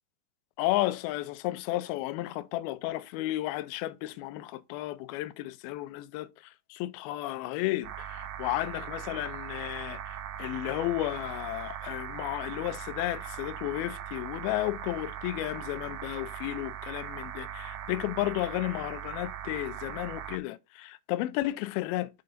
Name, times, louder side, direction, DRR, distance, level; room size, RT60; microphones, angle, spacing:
voice 1, 0.6-6.3 6.7-22.1, left 16 dB, 85° left, 2.2 m, -33 dB
sound 1, 7.8-20.4, right 9 dB, 75° right, 2.3 m, -40 dB
6.8 x 3.8 x 5.1 m
omnidirectional pair, 4.8 m